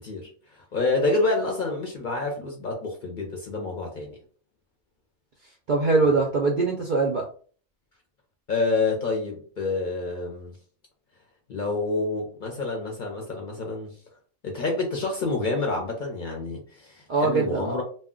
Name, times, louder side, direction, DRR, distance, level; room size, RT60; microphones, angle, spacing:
voice 1, 0.0-4.2 6.0-6.2 8.5-10.6 11.5-14.0 14.4-17.8, left 3 dB, 55° left, 1 dB, 0.6 m, -28 dB
voice 2, 5.7-7.3 17.1-17.8, right 3 dB, 65° right, -1 dB, 0.5 m, -22 dB
2.2 x 2.1 x 3.6 m, 0.44 s
omnidirectional pair, 1.3 m